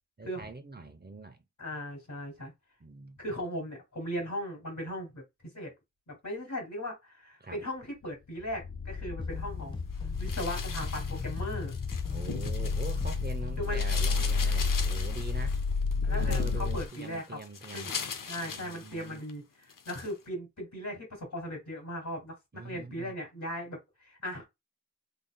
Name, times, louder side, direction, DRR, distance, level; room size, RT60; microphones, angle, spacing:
voice 1, 0.2-1.4 2.8-3.2 7.4-7.6 12.1-15.6 16.1-17.9 18.4-19.2 22.5-23.2, right 3 dB, 30° right, 0.8 m, -43 dB
voice 2, 1.6-2.5 3.2-5.7 6.1-9.8 10.2-11.7 13.6-13.8 16.0-17.4 17.7-18.0 18.3-24.5, equal, 65° left, 2.6 m, -38 dB
sound 1, 8.5-16.9, left 4 dB, 45° left, 0.5 m, -31 dB
sound 2, 9.2-13.7, left 3 dB, 15° left, 1.4 m, -42 dB
sound 3, 10.2-13.3 13.6-19.3 19.7-20.1, left 6 dB, 85° left, 0.7 m, -40 dB
3.9 x 3.6 x 2.2 m
cardioid pair, 45°, 32 cm